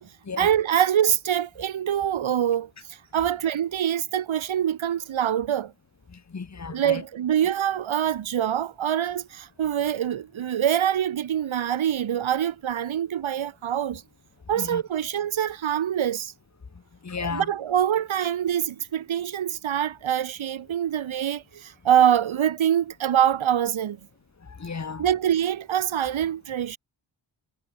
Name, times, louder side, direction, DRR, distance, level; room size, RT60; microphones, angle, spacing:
voice 1, 0.4-2.7 3.1-5.7 6.7-14.0 14.5-16.3 17.2-24.0 25.0-26.8, right 10 dB, 90° right, 1.5 m, -24 dB
voice 2, 6.1-7.0 14.6-14.8 17.0-17.5 24.5-25.0, left 5 dB, 35° left, 2.0 m, -34 dB
wide cardioid pair, 90°, 46 cm